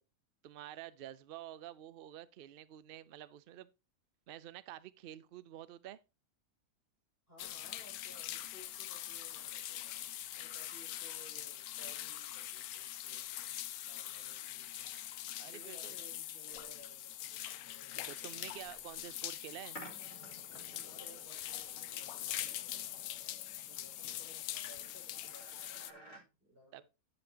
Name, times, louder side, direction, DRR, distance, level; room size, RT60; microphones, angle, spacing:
voice 1, 0.4-3.7 4.3-6.0 15.4-15.9 18.1-19.8 26.7-26.8, right 12 dB, 85° right, 0.5 m, -49 dB
voice 2, 7.3-10.1 10.3-13.5 13.9-14.9 15.4-18.7 20.6-23.2 23.5-26.8, equal, 40° right, 5.6 m, -60 dB
sound 1, 7.4-25.9, left 12 dB, 80° left, 1.1 m, -43 dB
sound 2, 19.8-26.2, equal, 60° left, 3.1 m, -56 dB
11.0 x 7.1 x 2.8 m
omnidirectional pair, 1.6 m